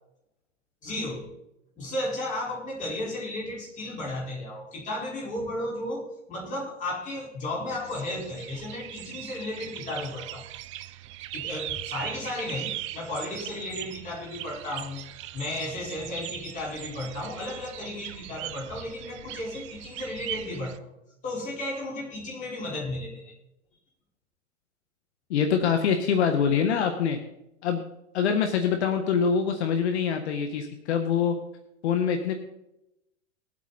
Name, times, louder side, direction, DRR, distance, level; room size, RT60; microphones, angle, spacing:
voice 1, 0.8-1.2 1.8-10.4 11.3-15.0 15.3-20.8 21.2-23.3, left 1 dB, 20° left, -4 dB, 4.9 m, -34 dB
sound 1, 7.7-20.8, right 14 dB, 25° right, 0.4 m, -40 dB
voice 2, 25.3-27.2 27.6-27.8 28.1-31.3 31.8-32.3, left 7 dB, 65° left, 6 dB, 1.6 m, -24 dB
20.0 x 8.4 x 4.2 m, 0.86 s
hypercardioid pair, 150°, 36 cm